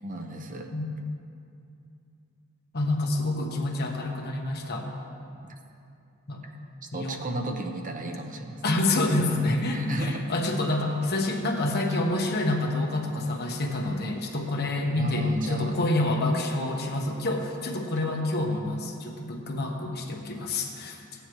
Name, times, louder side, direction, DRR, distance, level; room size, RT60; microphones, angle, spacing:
voice 1, 0.0-0.7 6.9-8.6 9.7-10.3 14.9-15.7, right 1 dB, 40° right, 4 dB, 0.8 m, -33 dB
voice 2, 2.7-4.9 6.3-6.4 6.9-7.2 8.6-21.0, left 2 dB, 50° left, 1 dB, 1.1 m, -27 dB
16.0 x 9.8 x 3.1 m, 2.6 s
head